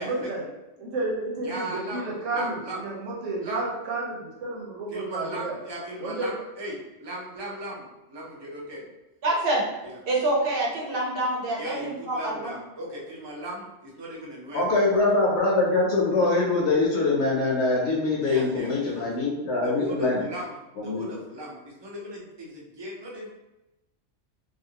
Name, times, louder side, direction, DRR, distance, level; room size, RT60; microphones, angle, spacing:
voice 1, 0.0-0.4 0.8-5.5 6.0-6.3, right 2 dB, 85° right, -3 dB, 1.1 m, -31 dB
voice 2, 1.4-2.8 3.4-3.6 4.9-8.8 9.8-10.0 11.6-14.9 18.2-19.1 19.6-23.3, right 1 dB, 35° right, -3 dB, 0.4 m, -37 dB
voice 3, 9.2-9.6 10.1-12.5, right 1 dB, 55° right, -3 dB, 0.9 m, -26 dB
voice 4, 14.5-20.2 20.8-21.1, left 3 dB, 70° left, -3 dB, 0.9 m, -23 dB
2.6 x 2.4 x 2.8 m, 0.96 s
omnidirectional pair, 1.3 m